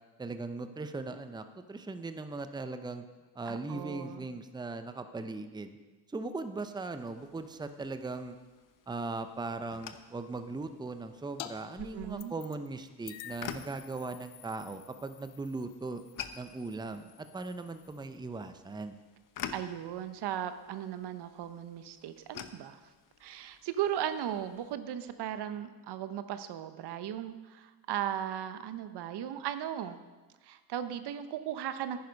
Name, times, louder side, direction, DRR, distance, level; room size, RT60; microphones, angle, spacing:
voice 1, 0.2-3.0 3.3-5.8 6.1-8.4 8.9-16.0 16.3-19.0, right 3 dB, 10° right, 9 dB, 0.7 m, -39 dB
voice 2, 3.5-4.3 11.8-12.3 19.5-22.8 23.2-30.1 30.4-32.0, right 10 dB, 65° right, 11 dB, 0.9 m, -37 dB
sound 1, 7.0-24.7, left 8 dB, 45° left, 0.9 m, -50 dB
sound 2, 11.4-11.5 11.8-12.7 13.1-18.2, left 14 dB, 90° left, 0.7 m, -50 dB
10.5 x 9.6 x 5.3 m, 1.2 s
supercardioid pair, 80°, 43 cm